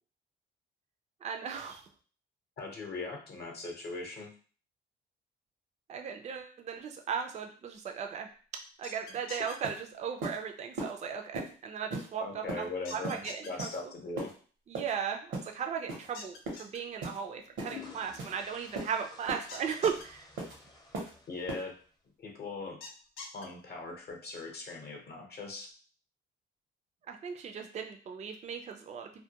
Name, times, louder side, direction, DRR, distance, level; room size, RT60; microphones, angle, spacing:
voice 1, 1.2-1.8 5.9-8.3 8.8-13.9 14.7-20.3 27.1-29.2, right 7 dB, 35° right, 4 dB, 0.4 m, -37 dB
voice 2, 2.6-4.3 12.2-14.3 21.3-21.7 22.2-22.8 23.3-25.7, left 3 dB, 55° left, 1 dB, 0.7 m, -40 dB
sound 1, 8.8-9.5 12.8-13.5 16.1-16.8 19.5-20.0 22.8-23.4, left 3 dB, 90° left, 0.5 m, -44 dB
sound 2, 9.1-9.2 9.6-9.8 10.2-10.4 10.8-10.9 11.3-11.5 11.9-12.1 12.5-12.6 13.0-13.2 13.6-13.8 14.2-14.3 14.7-14.9 15.3-15.5 15.9-16.1 16.5-16.6 17.0-17.2 17.6-17.7 18.2-18.3 18.8-18.9 19.3-19.4 19.8-20.0 20.4-20.5 20.9-21.1 21.5-21.6, right 2 dB, 75° right, 0.8 m, -37 dB
sound 3, 15.9-16.1 17.2-21.9, left 5 dB, 20° left, 0.5 m, -52 dB
2.2 x 2.1 x 2.8 m, 0.41 s
cardioid pair, 90°, 20 cm